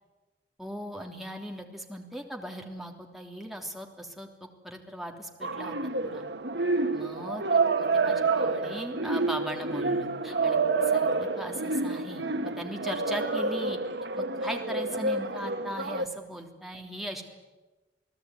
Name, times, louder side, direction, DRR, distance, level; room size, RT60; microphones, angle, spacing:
voice 1, 0.6-6.2 6.9-12.2 12.6-13.8 14.2-17.2, equal, ahead, 2 dB, 3.2 m, -39 dB
sound 1, 5.4-16.1, right 3 dB, 65° right, 1.3 m, -28 dB
29.0 x 18.5 x 9.5 m, 1.2 s
head